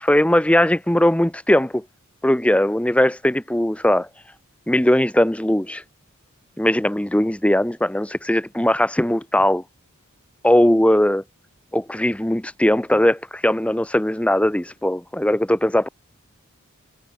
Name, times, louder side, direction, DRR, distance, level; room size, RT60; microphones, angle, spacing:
voice 1, 0.0-1.8 2.2-4.1 4.7-5.8 6.6-9.6 10.4-11.2 11.7-15.9, left 1 dB, 5° left, 0.8 m, -19 dB
open air
head